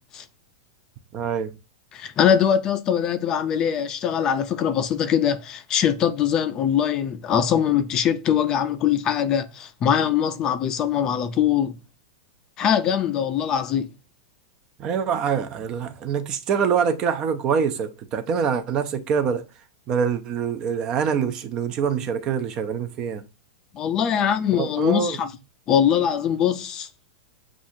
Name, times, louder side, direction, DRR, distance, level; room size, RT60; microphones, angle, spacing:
voice 1, 1.1-1.5 14.8-19.4 19.9-23.2 24.5-25.2, right 7 dB, 30° right, 0.5 m, -25 dB
voice 2, 1.9-11.8 12.6-13.9 23.7-25.3 25.7-26.9, left 9 dB, 25° left, 0.4 m, -22 dB
7.2 x 2.4 x 2.7 m
supercardioid pair, 150°, 2 cm